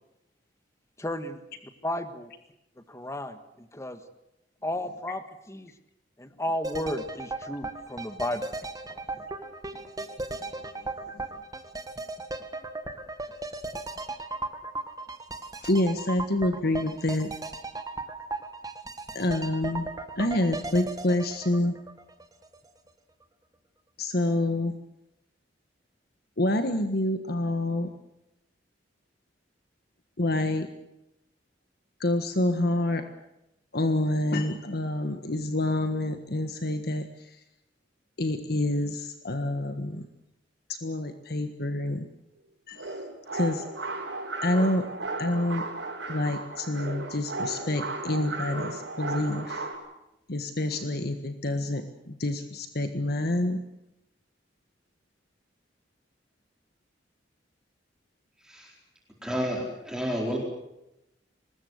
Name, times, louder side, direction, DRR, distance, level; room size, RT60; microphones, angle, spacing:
voice 1, 1.0-1.4 1.8-2.3 2.9-4.0 4.6-5.7 6.2-8.5 8.9-9.0, left 1 dB, 15° left, 9 dB, 1.6 m, -33 dB
sound 1, 6.6-22.6 22.9-23.0, right 2 dB, 20° right, 1.7 m, -37 dB
voice 2, 15.6-17.3 19.1-19.9 20.2-21.8 24.0-24.8 26.4-27.9 30.2-30.7 32.0-33.1 33.7-37.4 38.2-40.1 40.7-42.1 42.7-43.0 43.3-43.6 44.4-44.9 45.2-45.6 46.1-49.6 50.3-53.6, left 1 dB, 55° left, 8 dB, 1.5 m, -27 dB
sound 2, 42.8-49.8, right 2 dB, 75° right, 6.4 m, -35 dB
voice 3, 58.4-58.7 59.2-60.4, equal, 5° right, -1 dB, 4.4 m, -30 dB
24.5 x 20.5 x 8.0 m, 0.88 s
head